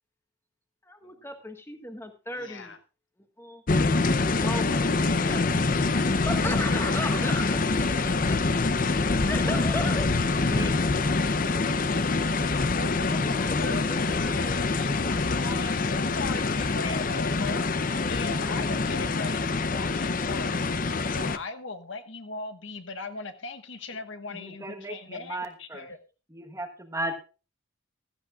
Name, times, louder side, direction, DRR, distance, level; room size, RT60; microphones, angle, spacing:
voice 1, 0.8-2.7 3.4-3.6 3.9-5.6 6.3-8.4 9.0-10.1 13.4-14.5, left 1 dB, 10° left, 6 dB, 1.5 m, -36 dB
voice 2, 2.4-2.8 12.7-26.0, left 3 dB, 65° left, 8 dB, 1.4 m, -39 dB
sound 1, 3.7-21.4, left 3 dB, 40° left, 0.6 m, -25 dB
voice 3, 10.4-10.9 24.3-25.9 26.3-27.1, right 1 dB, 15° right, 5 dB, 1.2 m, -36 dB
16.0 x 13.5 x 2.4 m, 0.33 s
head